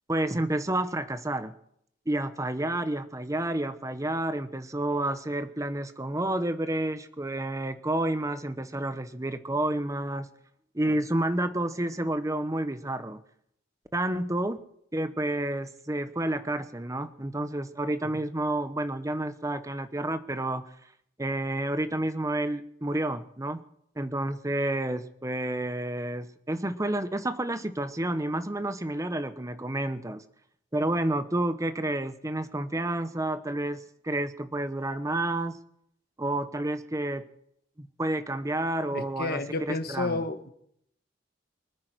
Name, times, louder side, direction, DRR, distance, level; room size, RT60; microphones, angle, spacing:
voice 1, 0.1-1.5 2.1-10.3 10.7-13.2 13.9-14.6 14.9-20.6 21.2-23.6 24.0-30.2 30.7-35.6 36.2-37.3 37.8-40.2, right 1 dB, 15° right, 11 dB, 0.9 m, -30 dB
voice 2, 38.9-40.5, left 3 dB, 55° left, 8 dB, 1.4 m, -31 dB
24.5 x 9.5 x 4.7 m, 0.71 s
head